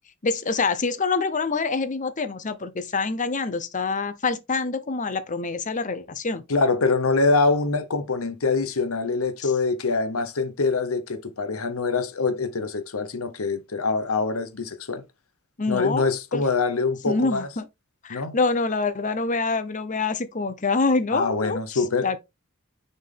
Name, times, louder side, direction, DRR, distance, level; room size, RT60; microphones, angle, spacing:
voice 1, 0.2-6.4 9.4-9.5 15.6-16.4 17.1-17.7 18.0-22.2, left 4 dB, 35° left, 0.8 m, -26 dB
voice 2, 6.5-15.0 15.7-17.5 18.1-18.4 21.1-22.2, left 3 dB, 80° left, 1.0 m, -24 dB
6.6 x 4.4 x 3.4 m
head